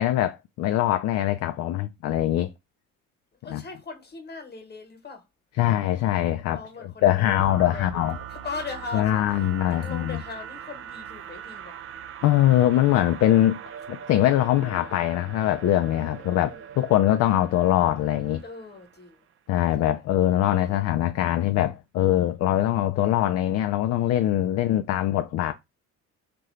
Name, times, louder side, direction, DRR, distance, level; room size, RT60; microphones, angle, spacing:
voice 1, 0.0-2.5 3.5-3.6 5.6-6.6 7.0-8.2 8.9-10.2 12.2-13.6 13.9-16.5 16.8-18.4 19.5-25.5, left 13 dB, 40° left, 0.4 m, -22 dB
voice 2, 3.4-5.2 6.5-11.9 16.1-16.7 18.4-19.2 19.8-20.0 20.3-20.8, left 4 dB, 25° left, 1.2 m, -40 dB
sound 1, 7.4-19.1, right 9 dB, 35° right, 0.4 m, -41 dB
2.7 x 2.5 x 3.2 m
hypercardioid pair, 50°, 41 cm